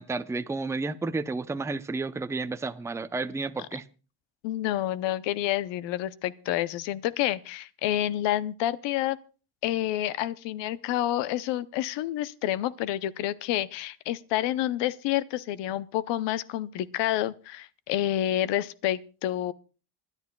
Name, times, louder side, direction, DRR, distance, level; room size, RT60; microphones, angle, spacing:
voice 1, 0.0-3.8, right 3 dB, 5° right, 0.5 m, -31 dB
voice 2, 4.4-9.2 9.6-19.5, left 13 dB, 85° left, 0.7 m, -29 dB
26.5 x 10.5 x 2.2 m
cardioid pair, 100°, 42 cm